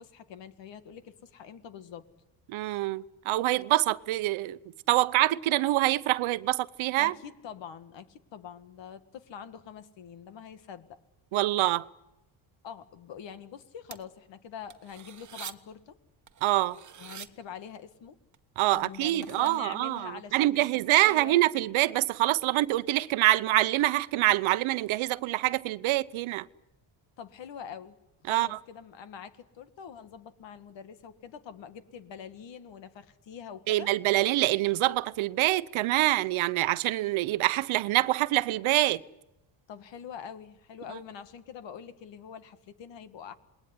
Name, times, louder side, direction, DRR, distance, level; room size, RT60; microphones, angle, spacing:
voice 1, 0.0-2.1 7.0-11.0 12.6-15.9 17.0-18.2 18.7-21.4 27.2-28.0 28.2-33.9 39.7-43.3, left 7 dB, 60° left, 2.1 m, -44 dB
voice 2, 2.5-4.6 4.9-7.1 11.3-11.9 16.4-16.8 18.6-26.5 28.3-28.6 33.7-39.0, right 17 dB, 75° right, 1.0 m, -25 dB
sound 1, 13.9-14.0 14.7-15.5 16.3-17.3 18.3-18.4 18.7-19.6, right 9 dB, 35° right, 1.3 m, -46 dB
28.0 x 21.0 x 9.8 m
cardioid pair, 120°, 49 cm